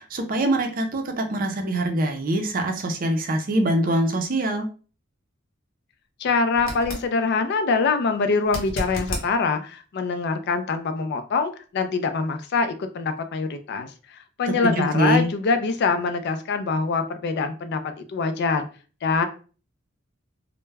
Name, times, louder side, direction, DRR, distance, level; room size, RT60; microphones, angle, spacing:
voice 1, 0.0-4.7 14.6-15.3, right 1 dB, 45° right, 5 dB, 0.5 m, -23 dB
voice 2, 6.2-18.7 19.0-19.3, left 4 dB, 55° left, 8 dB, 0.4 m, -24 dB
sound 1, 6.5-7.1 8.4-9.3 12.3-12.4, equal, 70° left, 0.8 m, -31 dB
2.2 x 2.1 x 3.2 m, 0.37 s
head